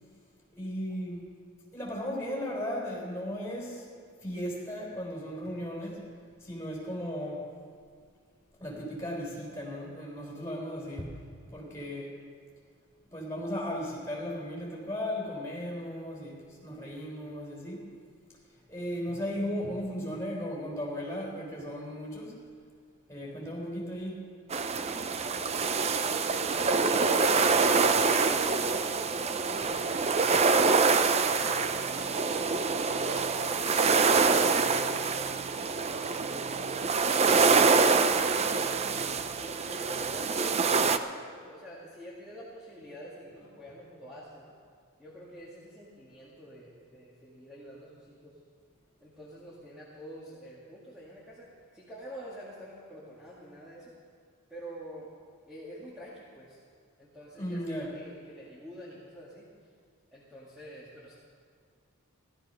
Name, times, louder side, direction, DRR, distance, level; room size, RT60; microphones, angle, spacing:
voice 1, 0.5-1.3 1.7-3.8 4.2-6.0 6.4-7.5 8.6-11.2 11.4-12.2 13.1-17.9 18.7-22.3 23.1-24.2 57.4-57.9, equal, 15° left, -4 dB, 3.9 m, -36 dB
sound 1, 24.5-41.0, right 4 dB, 30° right, 0.5 m, -25 dB
voice 2, 25.7-28.1 28.7-30.3 31.0-31.6 32.1-33.4 39.3-44.5 45.0-48.4 49.0-51.5 51.7-53.9 54.5-55.1 55.5-56.6 57.0-59.5 60.1-61.2, equal, ahead, -8 dB, 2.0 m, -47 dB
16.0 x 12.5 x 5.5 m, 2.1 s
head